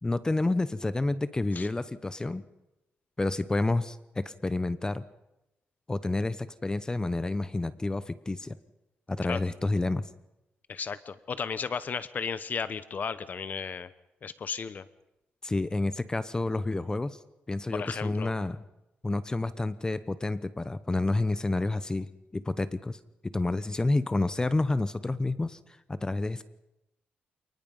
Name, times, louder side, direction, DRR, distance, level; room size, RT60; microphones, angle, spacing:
voice 1, 0.0-2.4 3.2-5.0 5.9-8.6 9.1-10.0 15.4-17.2 17.5-18.6 19.0-25.6 25.9-26.4, left 2 dB, 15° left, 14 dB, 0.9 m, -29 dB
voice 2, 10.7-13.9 14.2-14.9 17.7-18.3, left 6 dB, 45° left, 14 dB, 0.9 m, -34 dB
28.0 x 19.5 x 5.6 m, 0.91 s
cardioid pair, 110°, 4 cm